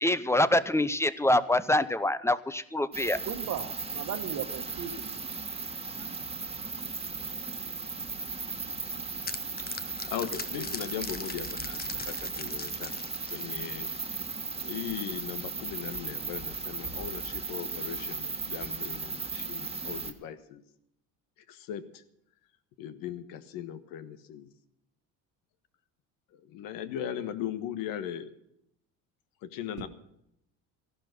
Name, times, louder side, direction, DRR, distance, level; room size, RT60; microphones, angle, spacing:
voice 1, 0.0-3.2, left 1 dB, 10° left, 15 dB, 0.7 m, -25 dB
sound 1, 2.9-20.1, right 4 dB, 15° right, 1.6 m, -36 dB
voice 2, 3.2-5.1 29.8-29.9, right 9 dB, 60° right, 9 dB, 1.5 m, -37 dB
sound 2, 8.6-14.1, left 6 dB, 25° left, 1.0 m, -41 dB
voice 3, 10.0-13.0 13.3-13.9 14.6-20.6 21.5-22.0 22.8-24.5 26.3-28.3 29.4-29.9, left 10 dB, 75° left, 11 dB, 1.4 m, -38 dB
14.0 x 11.5 x 6.0 m, 0.78 s
cardioid pair, 105°, 34 cm